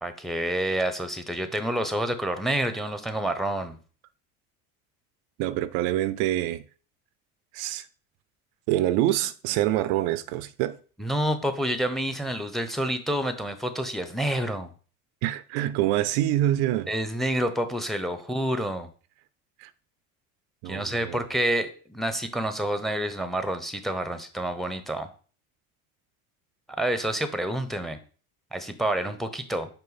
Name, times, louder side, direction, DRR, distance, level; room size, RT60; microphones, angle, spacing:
voice 1, 0.0-3.8 11.0-14.7 16.9-18.9 20.7-25.1 26.8-28.0 28.5-29.7, right 1 dB, ahead, 0.9 m, -28 dB
voice 2, 5.4-6.6 7.5-7.9 8.7-10.8 15.2-16.9 19.6-19.7 20.6-21.2, right 13 dB, 65° right, 0.6 m, -26 dB
5.6 x 4.2 x 4.1 m
hypercardioid pair, 85°, 45 cm